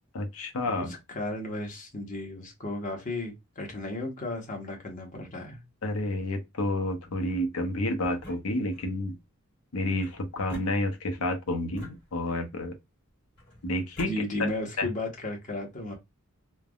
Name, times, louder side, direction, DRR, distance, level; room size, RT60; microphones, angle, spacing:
voice 1, 0.1-0.9 5.8-9.2 9.7-12.7 13.6-14.1 14.8-14.9, left 1 dB, 80° left, 0.7 m, -30 dB
voice 2, 0.7-5.6 14.0-15.9, left 1 dB, 35° left, 1.0 m, -34 dB
sound 1, 8.0-9.0 10.0-11.2 11.7-12.6 13.4-14.2, left 1 dB, 55° left, 1.5 m, -46 dB
3.3 x 2.1 x 2.3 m
head